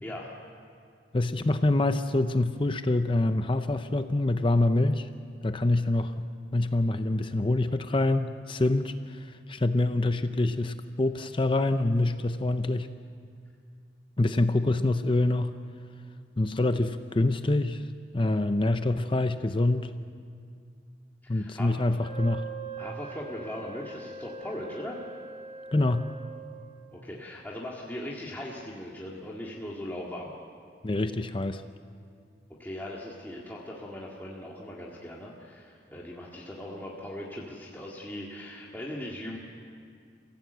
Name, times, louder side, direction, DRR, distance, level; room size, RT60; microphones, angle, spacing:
voice 1, 1.1-5.1 5.4-6.3 6.5-12.9 14.2-15.6 16.4-17.8 18.1-19.9 21.3-22.5 25.7-26.1 30.8-31.6, left 2 dB, 30° left, 9 dB, 0.6 m, -26 dB
voice 2, 21.2-21.7 22.8-25.0 26.9-30.3 32.6-39.4, left 1 dB, 10° left, -4 dB, 1.9 m, -39 dB
Wind instrument woodwind instrument, 22.0-26.7, right 5 dB, 55° right, 5.0 m, -42 dB
29.5 x 16.0 x 8.1 m, 2.3 s
head